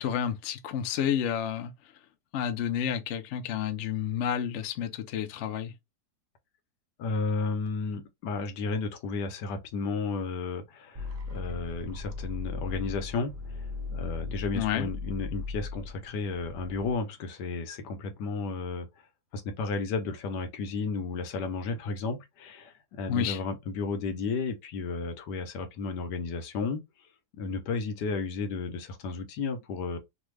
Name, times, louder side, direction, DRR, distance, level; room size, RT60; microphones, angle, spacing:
voice 1, 0.0-1.7 2.3-5.7 14.5-14.9 23.1-23.4, left 9 dB, 70° left, 0.7 m, -30 dB
voice 2, 7.0-18.9 19.3-26.8 27.4-30.0, left 4 dB, 85° left, 1.4 m, -33 dB
sound 1, 10.9-16.9, left 3 dB, 70° right, 0.4 m, -37 dB
3.3 x 2.1 x 3.1 m
omnidirectional pair, 1.8 m